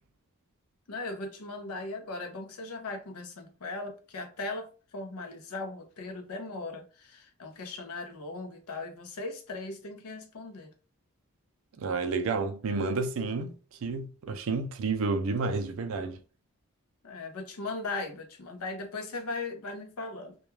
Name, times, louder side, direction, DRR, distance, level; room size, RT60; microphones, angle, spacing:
voice 1, 0.9-10.7 17.0-20.4, left 3 dB, 85° left, 0.6 m, -38 dB
voice 2, 11.8-13.6 13.8-16.2, right 3 dB, 65° right, 0.4 m, -30 dB
2.2 x 2.2 x 3.1 m
head